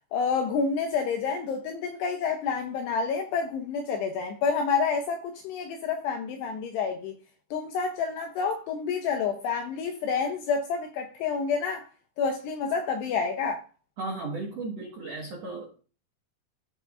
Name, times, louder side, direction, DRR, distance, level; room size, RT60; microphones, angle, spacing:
voice 1, 0.1-7.2 7.5-11.9 12.2-13.6, left 5 dB, 80° left, 2.4 m, -29 dB
voice 2, 14.0-15.8, right 3 dB, 80° right, 1.4 m, -35 dB
15.0 x 5.8 x 2.5 m
omnidirectional pair, 5.6 m